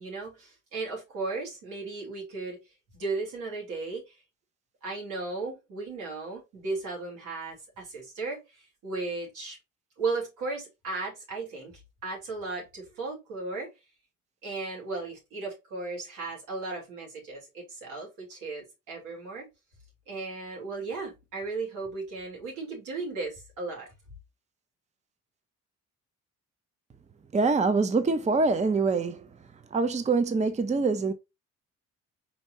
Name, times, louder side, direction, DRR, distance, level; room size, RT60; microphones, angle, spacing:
voice 1, 0.0-2.6 2.9-4.2 4.8-9.6 10.0-11.7 12.0-13.7 14.4-19.5 20.1-23.9, right 3 dB, 90° right, 3.2 m, -35 dB
voice 2, 27.3-29.3 29.7-31.1, right 4 dB, 25° right, 0.6 m, -24 dB
4.5 x 4.2 x 2.7 m
cardioid pair, 90°, 30 cm